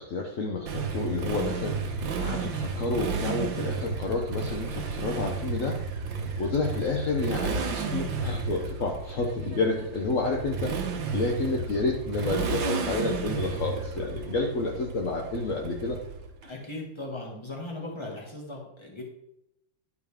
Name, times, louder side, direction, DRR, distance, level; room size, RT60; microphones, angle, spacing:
voice 1, 0.0-5.8 6.4-16.0, left 3 dB, 60° left, 0 dB, 0.8 m, -30 dB
Motorcycle, 0.7-16.4, right 5 dB, 65° right, 1.5 m, -32 dB
voice 2, 16.4-19.0, left 2 dB, 15° left, -1 dB, 1.5 m, -38 dB
11.0 x 4.9 x 3.5 m, 0.82 s
omnidirectional pair, 2.4 m